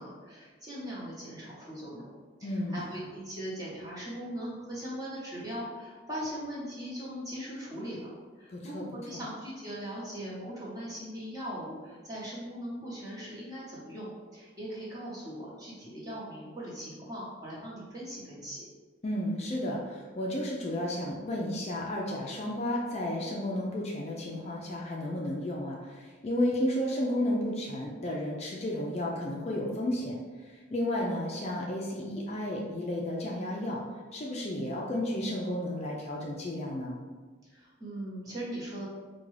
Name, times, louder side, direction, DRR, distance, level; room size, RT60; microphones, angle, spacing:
voice 1, 0.0-2.1 2.4-8.1 8.4-18.6 37.4-38.9, equal, 20° right, -7 dB, 1.0 m, -40 dB
voice 2, 2.4-2.8 8.5-8.8 9.1-9.2 19.0-33.8 34.1-37.0, left 1 dB, 35° left, -3 dB, 0.4 m, -32 dB
4.9 x 2.2 x 3.2 m, 1.4 s
head